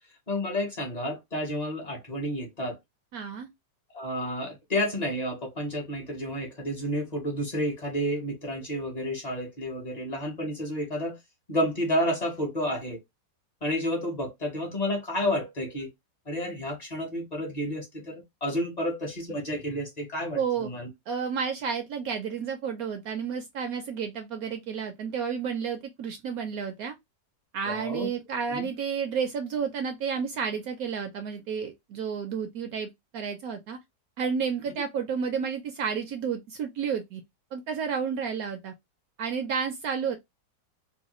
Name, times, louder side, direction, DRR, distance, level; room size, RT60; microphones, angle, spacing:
voice 1, 0.3-2.8 3.9-11.2 11.5-13.0 13.6-15.9 16.3-20.9 27.7-28.1 28.5-28.7, equal, 40° left, 0.5 m, -30 dB
voice 2, 3.1-3.5 20.3-20.7 21.1-26.9 27.5-33.8 34.2-37.2 37.5-38.7 39.2-40.2, right 6 dB, 70° right, 0.9 m, -31 dB
3.1 x 2.2 x 2.9 m
omnidirectional pair, 1.9 m